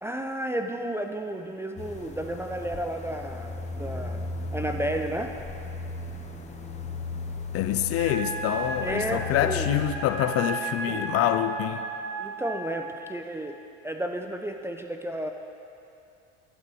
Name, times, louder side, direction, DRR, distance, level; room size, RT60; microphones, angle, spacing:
voice 1, 0.0-5.3 8.8-9.8 10.9-11.1 12.2-13.6 13.8-15.3, right 1 dB, 10° right, 4 dB, 0.3 m, -32 dB
sound 1, 1.8-9.9, left 4 dB, 25° left, 0.7 m, -35 dB
voice 2, 7.5-11.8, left 11 dB, 50° left, 10 dB, 0.5 m, -26 dB
Wind instrument woodwind instrument, 7.9-12.8, right 4 dB, 75° right, 1.6 m, -34 dB
11.0 x 8.2 x 3.0 m, 2.6 s
supercardioid pair, 85°, 30 cm